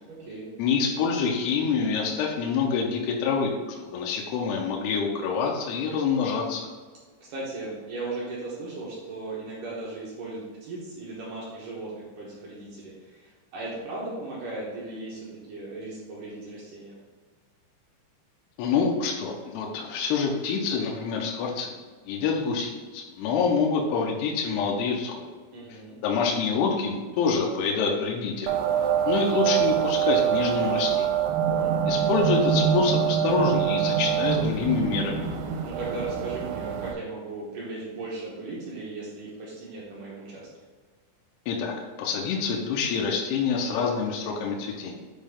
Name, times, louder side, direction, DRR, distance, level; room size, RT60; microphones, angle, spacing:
voice 1, 0.1-0.5 7.3-17.0 25.5-26.0 31.5-31.8 35.6-40.5, right 2 dB, 70° right, -6 dB, 2.1 m, -37 dB
voice 2, 0.6-3.6 3.8-6.6 18.6-21.7 22.1-25.3 25.7-28.6 29.1-31.2 31.9-35.3 41.5-41.7 42.0-45.0, left 5 dB, 75° left, -1 dB, 2.6 m, -26 dB
sound 1, 28.5-36.9, right 9 dB, 85° right, 2.9 m, -25 dB
7.5 x 4.2 x 3.5 m, 1.4 s
omnidirectional pair, 5.3 m